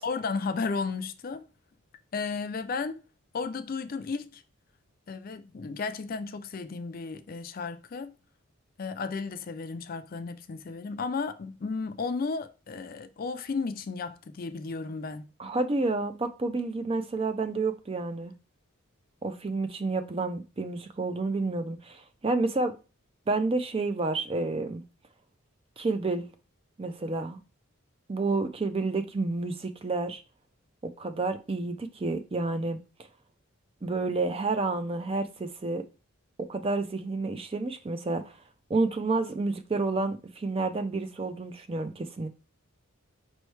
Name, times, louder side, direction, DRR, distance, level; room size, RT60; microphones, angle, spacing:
voice 1, 0.0-1.4 2.1-3.0 3.3-4.4 5.1-8.2 8.8-15.3, left 4 dB, 45° left, 0.4 m, -34 dB
voice 2, 15.4-18.3 19.2-22.7 23.3-24.8 25.8-26.2 26.8-27.4 28.1-30.2 30.8-32.8 33.8-35.8 36.4-38.4 38.7-42.3, right 3 dB, 25° right, 0.4 m, -30 dB
5.3 x 3.1 x 3.2 m
head